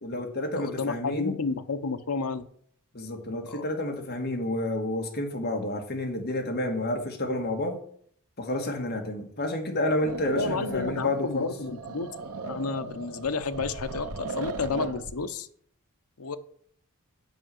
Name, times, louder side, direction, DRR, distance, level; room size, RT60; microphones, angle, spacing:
voice 1, 0.0-1.4 2.9-7.8 8.4-11.5, left 1 dB, 50° left, 3 dB, 1.8 m, -30 dB
voice 2, 0.6-2.5 3.4-3.7 10.4-12.1 12.4-15.5 16.2-16.4, left 4 dB, 80° left, 9 dB, 0.8 m, -31 dB
sound 1, 10.0-15.2, right 3 dB, 85° right, 0.9 m, -37 dB
9.2 x 5.6 x 7.7 m, 0.62 s
head